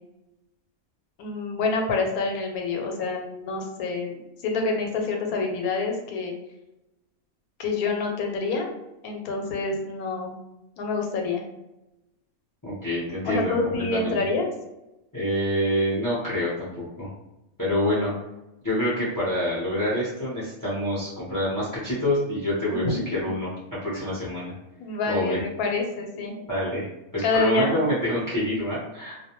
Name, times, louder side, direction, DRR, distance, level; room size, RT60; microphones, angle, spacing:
voice 1, 1.2-6.3 7.6-8.7 9.0-10.4 10.8-11.4 13.2-14.5 22.7-23.0 23.9-24.0 24.8-26.3 27.2-27.8, left 3 dB, 85° left, 2 dB, 1.1 m, -27 dB
voice 2, 12.6-14.2 15.1-17.1 17.6-18.1 18.6-24.5 25.0-25.4 26.5-26.9 27.1-29.2, left 1 dB, 20° left, -8 dB, 0.5 m, -27 dB
2.4 x 2.1 x 2.9 m, 0.96 s
omnidirectional pair, 1.5 m